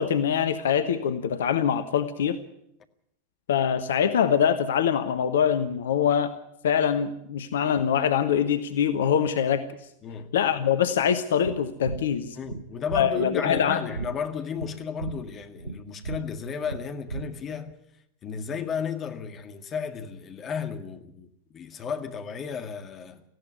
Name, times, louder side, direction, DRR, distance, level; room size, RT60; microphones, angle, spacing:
voice 1, 0.0-2.4 3.5-6.3 6.6-9.6 10.3-12.4 12.9-13.9, left 8 dB, 60° left, 1.1 m, -24 dB
voice 2, 10.0-10.4 12.3-17.8 18.2-23.2, left 7 dB, 25° left, 1.8 m, -34 dB
sound 1, 11.4-17.7, right 4 dB, 80° right, 0.7 m, -37 dB
18.0 x 15.5 x 9.6 m
figure-of-eight pair, 90°, 0 cm